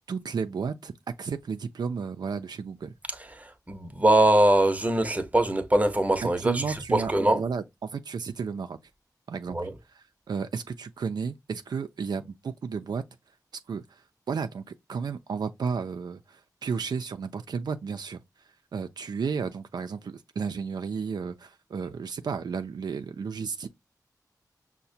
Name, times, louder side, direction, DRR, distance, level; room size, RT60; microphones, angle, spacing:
voice 1, 0.1-2.9 6.4-8.8 9.3-9.6 9.9-13.0 13.7-23.7, right 5 dB, 75° right, 0.4 m, -33 dB
voice 2, 3.4-7.4 9.5-9.7, right 1 dB, 20° right, 0.7 m, -22 dB
5.7 x 2.1 x 2.6 m
wide cardioid pair, 75°, 7 cm